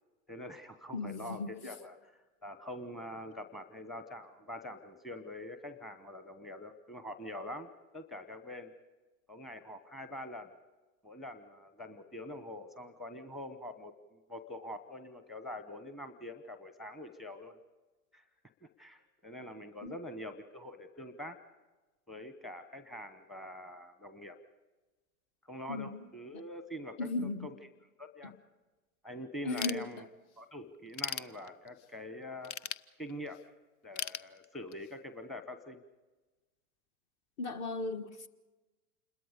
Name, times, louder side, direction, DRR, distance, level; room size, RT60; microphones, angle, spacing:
voice 1, 0.3-7.7 7.9-8.7 9.3-10.6 11.0-17.6 18.1-18.2 18.6-21.4 22.1-24.4 25.5-27.6 28.0-28.3 29.0-30.0 30.4-32.7 33.0-33.4 33.8-35.8, left 1 dB, ahead, 1.0 m, -45 dB
voice 2, 0.9-1.5 19.8-19.9 25.7-26.0 27.0-27.5 29.4-30.1 37.4-38.3, left 3 dB, 35° left, 1.5 m, -36 dB
Ratchet pawl / Tools, 29.6-30.4 30.7-31.9 32.4-33.4 34.0-34.9, left 10 dB, 55° left, 0.7 m, -39 dB
27.5 x 21.5 x 5.2 m
hypercardioid pair, 105°, 44 cm